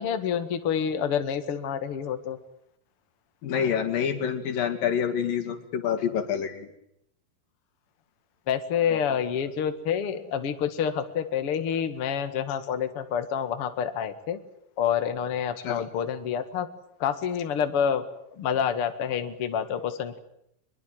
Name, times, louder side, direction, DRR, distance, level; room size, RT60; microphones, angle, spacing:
voice 1, 0.0-2.4 8.5-14.4 14.8-16.7 17.0-18.0 18.4-20.2, left 8 dB, 45° left, 9 dB, 2.4 m, -28 dB
voice 2, 3.4-6.7 8.9-9.2 15.6-15.9, left 8 dB, 75° left, 5 dB, 4.1 m, -27 dB
24.5 x 22.0 x 9.3 m, 0.75 s
omnidirectional pair, 4.0 m